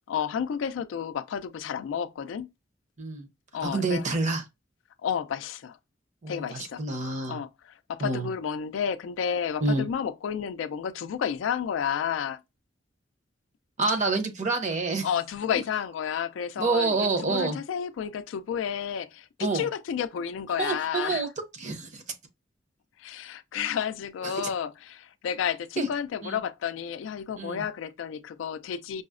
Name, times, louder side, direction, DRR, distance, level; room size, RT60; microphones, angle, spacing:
voice 1, 0.1-2.5 3.5-4.1 5.0-5.8 6.3-6.8 7.3-12.4 15.0-21.2 23.0-29.0, left 8 dB, 75° left, 0.3 m, -31 dB
voice 2, 3.6-4.4 6.2-7.4 8.0-8.3 9.6-9.9 13.8-15.1 16.6-17.6 19.4-19.7 20.6-21.3 21.6-22.0 24.2-24.3 25.8-25.9 26.2-26.4 27.4-27.6, right 3 dB, 40° right, 0.7 m, -27 dB
5.3 x 2.0 x 2.4 m
head